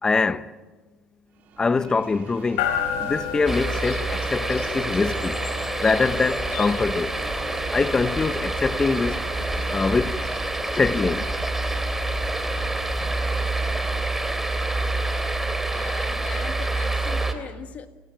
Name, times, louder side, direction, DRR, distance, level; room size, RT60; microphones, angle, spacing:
voice 1, 0.0-0.5 1.6-2.7 3.0-5.4 5.8-7.1 7.7-9.2 9.7-10.2 10.7-11.3, left 4 dB, 20° left, 1.0 m, -23 dB
sound 1, 1.3-11.2, right 8 dB, 55° right, 2.5 m, -46 dB
sound 2, 2.6-15.6, left 7 dB, 85° left, 4.2 m, -35 dB
sound 3, 3.5-17.3, right 2 dB, 10° right, 3.0 m, -27 dB
voice 2, 15.7-17.9, left 8 dB, 45° left, 1.7 m, -39 dB
29.0 x 17.5 x 8.9 m
supercardioid pair, 100°, 3 cm